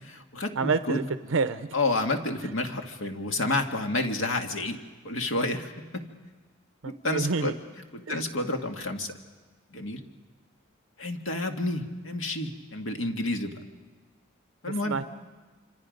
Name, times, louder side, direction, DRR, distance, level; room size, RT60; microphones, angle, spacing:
voice 1, 0.0-1.1 1.7-4.8 5.0-6.1 6.9-9.1 9.7-10.0 11.0-13.5 14.6-15.0, left 2 dB, 80° left, 4 dB, 1.9 m, -30 dB
voice 2, 0.6-1.7 6.8-7.5 8.1-8.2 14.9-15.0, right 4 dB, 75° right, 10 dB, 0.6 m, -28 dB
27.0 x 26.5 x 5.3 m, 1.3 s
head